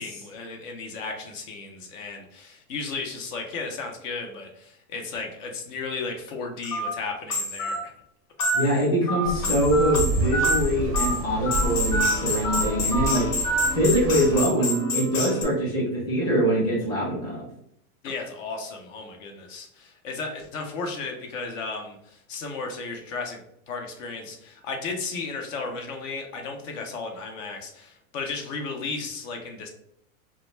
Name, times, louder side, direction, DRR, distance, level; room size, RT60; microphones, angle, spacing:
voice 1, 0.0-7.9 18.0-23.4 23.7-29.7, left 4 dB, 60° left, 3 dB, 0.7 m, -34 dB
sound 1, 6.3-6.4 6.6-6.7 7.3-7.8 8.4-8.9 9.2-15.4, left 3 dB, 40° left, 0.9 m, -29 dB
Telephone, 6.7-6.9 7.6-7.8 8.4-8.6 9.1-9.3 9.7-9.9 10.3-10.5 10.9-11.1 11.5-11.6 11.9-12.1 12.4-12.6 12.9-13.1 13.4-13.7, right 4 dB, 90° left, 1.3 m, -26 dB
voice 2, 8.5-13.3 13.7-17.5, equal, 10° left, -6 dB, 0.6 m, -23 dB
sound 2, 9.2-14.5, right 1 dB, 45° right, 0.4 m, -30 dB
2.3 x 2.2 x 3.0 m, 0.74 s
supercardioid pair, 150°, 44 cm